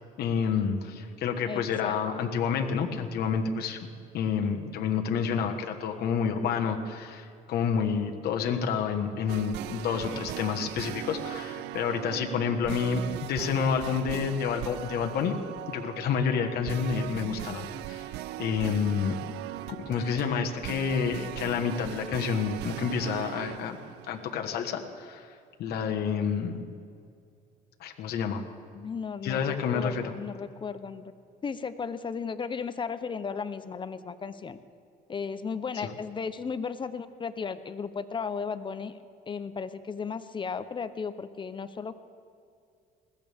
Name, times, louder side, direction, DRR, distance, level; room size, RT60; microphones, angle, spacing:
voice 1, 0.2-3.9 4.1-15.4 15.7-18.1 18.4-19.2 19.7-23.8 24.1-25.3 25.6-26.5 27.8-28.4 29.2-30.1 35.8-35.9, left 6 dB, 70° left, 3 dB, 1.3 m, -29 dB
voice 2, 1.5-2.3 28.7-31.1 31.4-34.6 35.1-39.0 39.3-41.9, left 5 dB, 30° left, 11 dB, 0.7 m, -35 dB
sound 1, 9.3-24.5, right 14 dB, 80° right, 0.5 m, -39 dB
20.5 x 16.0 x 3.5 m, 2.4 s
cardioid pair, 110°, 17 cm